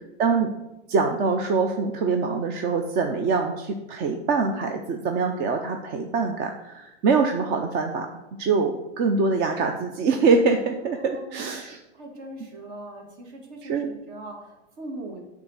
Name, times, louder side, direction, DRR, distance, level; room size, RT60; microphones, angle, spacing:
voice 1, 0.2-0.5 0.9-8.1 8.4-11.8 13.6-13.9, right 4 dB, 30° right, 5 dB, 0.6 m, -24 dB
voice 2, 10.9-11.5 11.9-15.2, right 1 dB, 50° right, 1 dB, 2.3 m, -40 dB
8.4 x 3.6 x 6.6 m, 0.97 s
hypercardioid pair, 130°, 34 cm